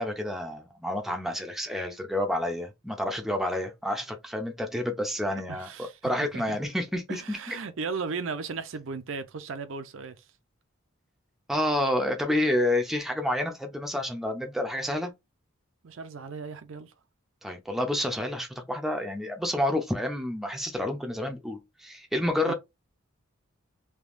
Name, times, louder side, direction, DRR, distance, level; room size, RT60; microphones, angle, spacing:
voice 1, 0.0-5.7 6.0-7.6 11.5-15.1 17.4-22.5, left 1 dB, ahead, 0.5 m, -29 dB
voice 2, 5.5-6.6 7.1-10.2 15.8-16.9 22.5-22.6, right 5 dB, 65° right, 0.5 m, -36 dB
3.5 x 2.7 x 2.5 m
head